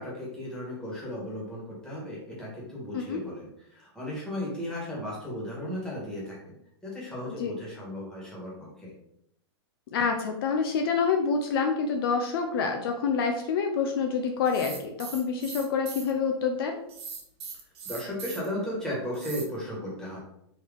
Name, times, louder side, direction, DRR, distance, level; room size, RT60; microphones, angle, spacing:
voice 1, 0.0-6.5 6.8-8.9 17.8-20.2, left 1 dB, 5° left, -5 dB, 1.4 m, -35 dB
voice 2, 7.3-7.6 9.9-16.8, left 5 dB, 55° left, 3 dB, 0.5 m, -27 dB
sound 1, 14.4-16.1 16.9-18.5 19.1-19.4, right 5 dB, 65° right, 1.1 m, -40 dB
3.8 x 2.7 x 3.4 m, 0.76 s
hypercardioid pair, 145°, 14 cm